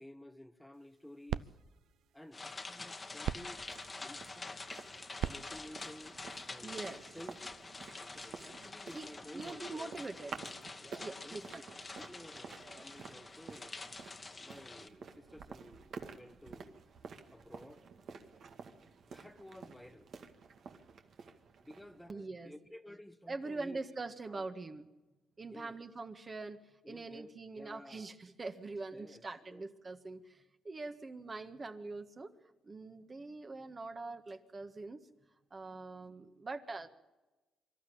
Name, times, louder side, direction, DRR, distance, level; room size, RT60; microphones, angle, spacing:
voice 1, 0.0-1.5 2.1-3.6 4.0-4.9 5.2-6.2 6.5-7.4 7.9-10.0 10.8-11.5 11.9-13.7 14.4-16.9 17.3-17.8 18.8-20.1 21.6-23.8 24.3-24.4 25.5-25.8 26.8-28.1 28.9-29.6, left 1 dB, 5° left, 1.2 m, -53 dB
sound 1, 0.7-7.1, right 10 dB, 75° right, 0.6 m, -44 dB
sound 2, 2.3-14.9, left 3 dB, 25° left, 1.4 m, -47 dB
sound 3, 3.5-22.1, right 5 dB, 60° right, 2.0 m, -52 dB
voice 2, 6.6-7.0 8.9-9.1 9.3-10.4 11.0-11.6 22.1-22.5 23.3-24.9 25.4-26.6 26.9-32.3 32.6-35.0 35.5-36.9, right 3 dB, 30° right, 1.6 m, -43 dB
24.5 x 12.5 x 8.7 m
cardioid pair, 90°, 0 cm